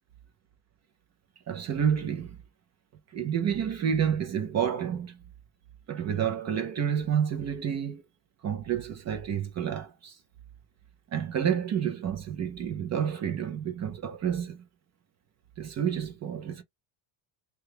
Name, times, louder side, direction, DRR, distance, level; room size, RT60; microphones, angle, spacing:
voice 1, 1.5-2.4 3.1-5.2 5.9-8.0 8.4-10.2 11.1-14.6 15.6-16.6, right 8 dB, 35° right, 0.4 m, -29 dB
2.8 x 2.3 x 3.2 m
cardioid pair, 175°, 49 cm